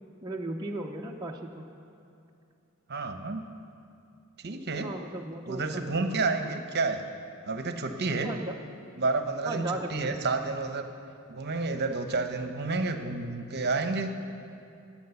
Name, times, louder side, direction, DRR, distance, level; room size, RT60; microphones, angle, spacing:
voice 1, 0.2-1.7 4.8-6.5 8.2-8.6 9.5-10.2, right 2 dB, 15° right, -1 dB, 0.7 m, -36 dB
voice 2, 2.9-3.4 4.4-4.9 5.5-7.0 7.5-8.3 9.0-10.9 11.3-14.1, right 3 dB, 45° right, 7 dB, 0.9 m, -30 dB
17.5 x 8.8 x 7.0 m, 2.6 s
head